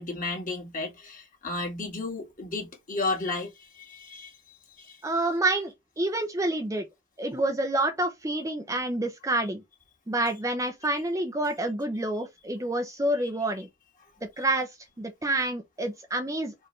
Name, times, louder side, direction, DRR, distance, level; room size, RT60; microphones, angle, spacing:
voice 1, 0.0-5.0, left 3 dB, 40° left, 2.0 m, -33 dB
voice 2, 5.0-6.8 7.2-9.6 10.1-13.7 14.2-16.5, right 2 dB, 15° right, 0.6 m, -28 dB
4.5 x 3.3 x 3.2 m
head